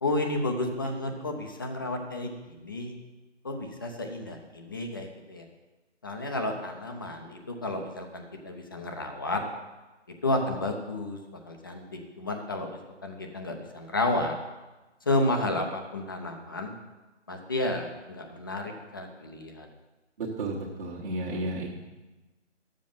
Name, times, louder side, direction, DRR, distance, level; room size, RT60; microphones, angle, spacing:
voice 1, 0.0-2.9 3.4-5.4 6.0-9.4 10.2-11.2 11.5-14.4 15.1-16.7 17.3-19.7 21.3-21.7, left 2 dB, 20° left, 3 dB, 0.6 m, -31 dB
voice 2, 20.2-21.7, right 2 dB, 45° right, -5 dB, 1.6 m, -32 dB
11.0 x 7.4 x 5.9 m, 1.1 s
figure-of-eight pair, 155°, 37 cm